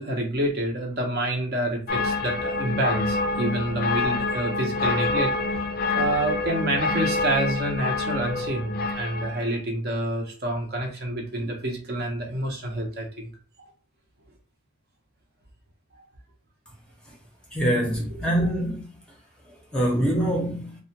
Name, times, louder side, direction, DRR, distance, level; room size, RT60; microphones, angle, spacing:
voice 1, 0.0-5.3 5.9-13.3 13.6-13.7 18.1-18.2, right 1 dB, 45° right, 0.7 m, -28 dB
sound 1, 1.9-9.5, left 3 dB, 45° left, 0.4 m, -27 dB
voice 2, 17.5-18.8 19.7-20.8, right 1 dB, 5° left, 0.6 m, -24 dB
2.3 x 2.1 x 2.8 m
head